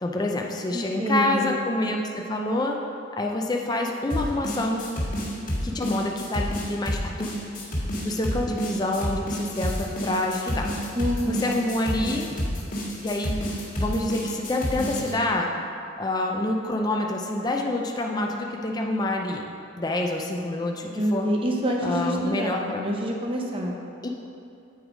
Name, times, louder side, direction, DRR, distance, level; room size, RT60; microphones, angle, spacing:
voice 1, 0.0-2.8 3.2-5.0 5.6-7.3 8.0-10.7 11.3-12.3 13.0-13.3 13.7-15.5 16.0-19.5 19.8-21.3 21.8-22.8 24.0-24.1, left 1 dB, 20° left, 1 dB, 0.4 m, -27 dB
voice 2, 0.7-1.6 10.9-11.6 20.9-23.8, equal, 25° right, 0 dB, 0.8 m, -27 dB
sound 1, 4.1-15.1, equal, 45° left, 1.7 m, -29 dB
8.0 x 4.7 x 5.0 m, 2.6 s
head